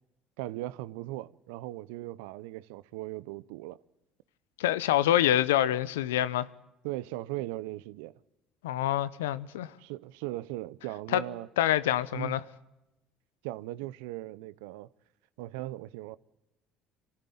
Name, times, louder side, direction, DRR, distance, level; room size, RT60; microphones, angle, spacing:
voice 1, 0.4-3.8 6.8-8.2 9.8-11.5 12.1-12.4 13.4-14.9 15.4-16.2, right 17 dB, 80° right, 0.7 m, -38 dB
voice 2, 4.6-6.5 8.6-9.7 11.1-11.2 11.6-12.4, left 12 dB, 85° left, 0.8 m, -26 dB
25.0 x 14.5 x 8.6 m
hypercardioid pair, 65°, 0 cm